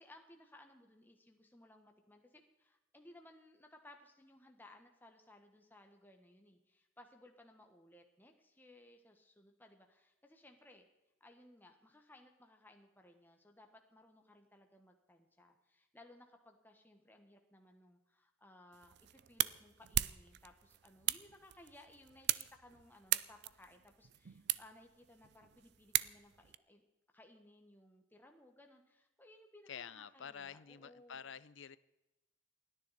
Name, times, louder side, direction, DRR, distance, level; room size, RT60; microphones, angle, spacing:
voice 1, 0.0-10.9 11.2-26.8 27.1-31.3, left 1 dB, 10° left, 4 dB, 1.3 m, -61 dB
sound 1, 18.7-26.6, right 14 dB, 50° right, 0.4 m, -39 dB
voice 2, 29.7-31.8, left 7 dB, 60° left, 17 dB, 0.6 m, -49 dB
29.5 x 10.0 x 4.2 m, 0.99 s
head